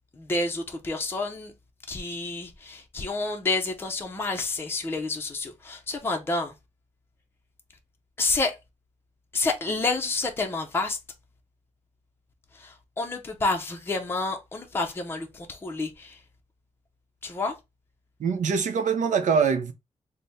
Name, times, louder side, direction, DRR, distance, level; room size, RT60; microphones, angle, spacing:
voice 1, 0.2-1.5 1.9-6.5 8.2-8.5 9.3-11.0 12.5-16.2 17.2-17.5, left 3 dB, 20° left, 0.5 m, -29 dB
voice 2, 18.2-19.7, right 6 dB, 80° right, 0.6 m, -23 dB
3.4 x 2.0 x 4.0 m
wide cardioid pair, 165°, 13 cm